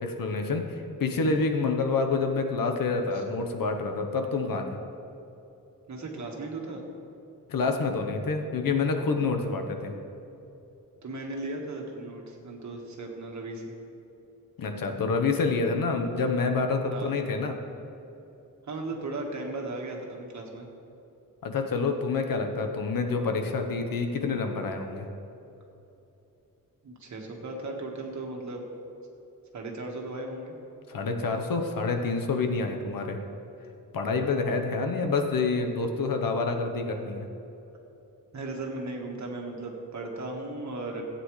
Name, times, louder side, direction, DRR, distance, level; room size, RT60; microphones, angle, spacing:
voice 1, 0.0-4.8 7.5-9.9 14.6-17.6 21.4-25.1 30.9-33.2 33.9-37.2, left 4 dB, 75° left, 5 dB, 1.1 m, -27 dB
voice 2, 5.9-6.8 11.0-13.7 16.9-17.1 18.7-20.7 26.8-28.6 29.5-30.6 38.3-41.0, right 2 dB, 55° right, 1 dB, 1.6 m, -36 dB
16.5 x 8.9 x 3.2 m, 3.0 s
wide cardioid pair, 150°, 34 cm